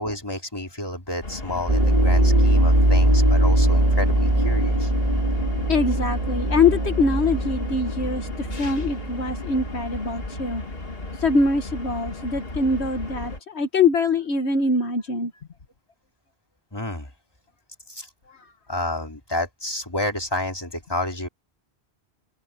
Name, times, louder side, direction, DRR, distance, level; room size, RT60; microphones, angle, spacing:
voice 1, 0.0-4.9 16.7-17.1 17.9-18.1 18.7-21.3, left 1 dB, 20° left, 3.2 m, -30 dB
sound 1, 1.2-13.4, left 2 dB, 65° left, 2.5 m, -35 dB
sound 2, 1.7-10.4, right 1 dB, 35° right, 2.4 m, -21 dB
voice 2, 5.7-10.6 11.2-15.3, left 3 dB, 85° left, 1.8 m, -23 dB
open air
omnidirectional pair, 1.1 m